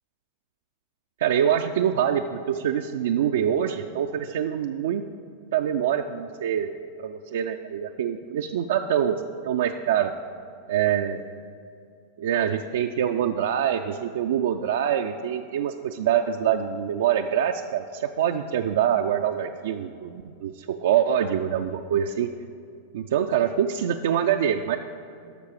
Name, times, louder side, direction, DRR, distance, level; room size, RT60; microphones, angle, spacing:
voice 1, 1.2-5.0 5.5-6.7 7.0-10.1 10.7-11.2 12.2-22.3 22.9-24.8, right 9 dB, 60° right, 5 dB, 0.3 m, -25 dB
11.5 x 6.7 x 4.7 m, 2.4 s
figure-of-eight pair, 90°, 0 cm